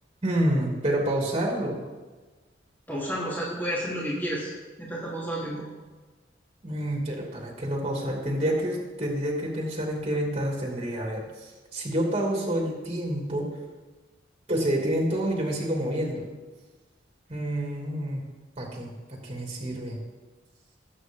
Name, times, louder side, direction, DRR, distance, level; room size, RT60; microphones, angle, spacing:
voice 1, 0.2-1.8 6.6-13.5 14.5-16.3 17.3-18.2 18.6-18.9 19.2-20.0, right 1 dB, 30° right, -1 dB, 2.6 m, -28 dB
voice 2, 2.9-4.5 4.8-5.6, equal, 10° left, -7 dB, 3.5 m, -31 dB
20.5 x 8.6 x 3.8 m, 1.3 s
head